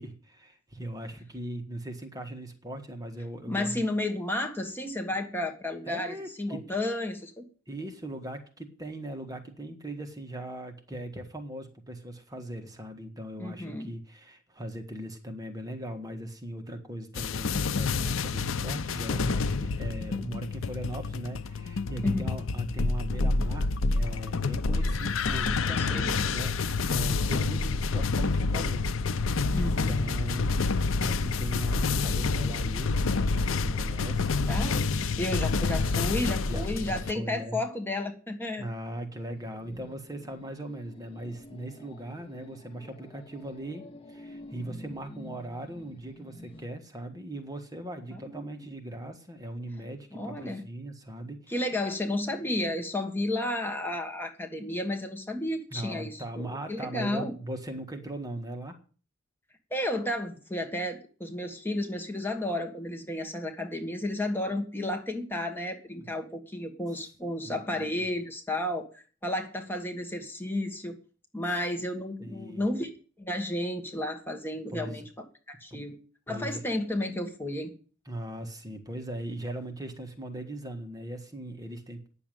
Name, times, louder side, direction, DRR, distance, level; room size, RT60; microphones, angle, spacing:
voice 1, 0.0-3.9 5.9-6.6 7.7-26.5 26.9-34.3 34.6-34.8 36.5-37.6 38.6-51.5 55.7-58.8 67.4-68.1 72.2-72.6 74.7-75.0 75.7-75.8 76.3-76.6 78.0-82.0, right 1 dB, 20° right, 5 dB, 1.6 m, -39 dB
voice 2, 3.5-7.4 13.4-13.9 22.0-22.2 25.8-26.2 29.5-29.9 34.4-38.6 48.1-48.7 50.1-50.6 51.5-57.3 59.7-71.0 71.3-72.9 73.2-75.0 75.6-76.0 76.3-77.7, left 1 dB, 10° left, 4 dB, 1.6 m, -32 dB
sound 1, 17.1-37.1, left 4 dB, 70° left, 0.6 m, -28 dB
sound 2, 39.3-46.6, left 1 dB, 25° left, 1.0 m, -49 dB
9.8 x 7.1 x 9.1 m, 0.39 s
head